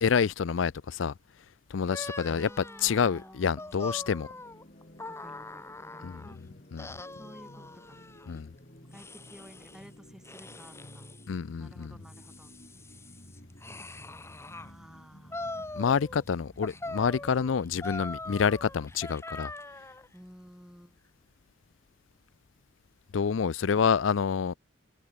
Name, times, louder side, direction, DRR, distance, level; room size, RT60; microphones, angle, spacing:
voice 1, 0.0-1.1 1.7-4.3 6.0-6.2 6.7-6.9 8.3-8.5 11.3-11.9 15.7-19.5 23.1-24.5, left 6 dB, 80° left, 0.5 m, -28 dB
sound 1, 1.9-6.4 6.8-8.3 8.9-9.9 10.2-11.3 11.8-14.7 15.3-16.3 16.6-20.1, left 2 dB, 15° left, 1.9 m, -42 dB
voice 2, 2.3-4.4 5.1-6.4 7.2-8.0 8.8-11.0 11.6-12.5 14.5-15.6 20.1-21.0, equal, 5° right, 2.8 m, -53 dB
sound 2, 4.2-19.1, equal, 40° left, 5.1 m, -53 dB
head